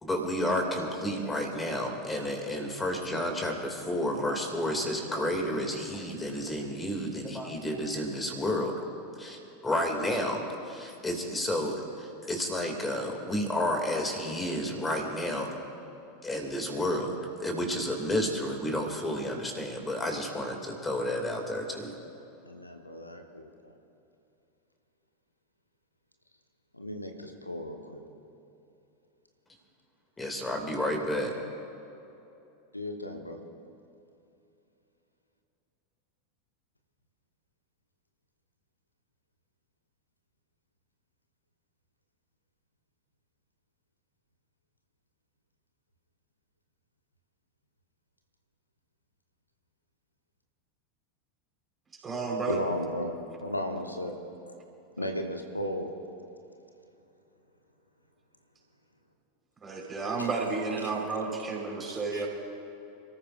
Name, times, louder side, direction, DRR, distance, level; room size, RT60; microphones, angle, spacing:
voice 1, 0.0-8.9 9.2-15.5 16.2-22.0 30.2-31.4, left 1 dB, 15° left, 3 dB, 2.4 m, -31 dB
voice 2, 22.5-23.7 26.7-28.0 32.7-33.4 52.5-54.1 54.5-54.6 55.0-55.9 60.2-60.3 61.9-62.3, left 1 dB, 90° left, 4 dB, 1.2 m, -35 dB
voice 3, 52.0-52.6 59.6-62.3, right 4 dB, 20° right, -1 dB, 4.3 m, -31 dB
28.5 x 14.0 x 2.6 m, 2.9 s
figure-of-eight pair, 85°, 0 cm